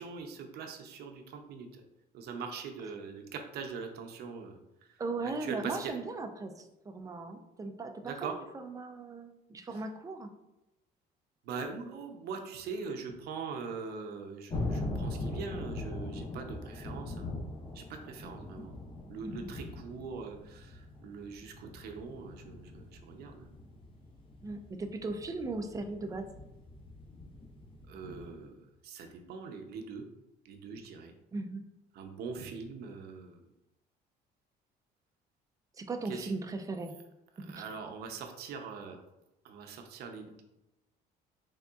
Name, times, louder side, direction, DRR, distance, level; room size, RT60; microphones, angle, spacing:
voice 1, 0.0-1.7 2.1-4.5 5.4-6.0 8.0-8.3 9.7-9.8 11.5-17.3 17.8-18.7 19.1-20.7 21.0-23.5 27.9-28.5 28.8-30.0 30.5-31.1 32.0-33.3 36.0-36.3 37.4-39.0 39.4-40.4, right 5 dB, 70° right, 4 dB, 0.6 m, -42 dB
voice 2, 5.0-10.3 19.2-19.6 24.4-26.3 31.3-31.6 35.8-37.0 37.4-37.6, right 3 dB, 20° right, 6 dB, 0.4 m, -38 dB
sound 1, 14.5-28.2, left 2 dB, 30° left, 0.8 m, -41 dB
3.8 x 3.5 x 2.3 m, 0.93 s
cardioid pair, 110°, 17 cm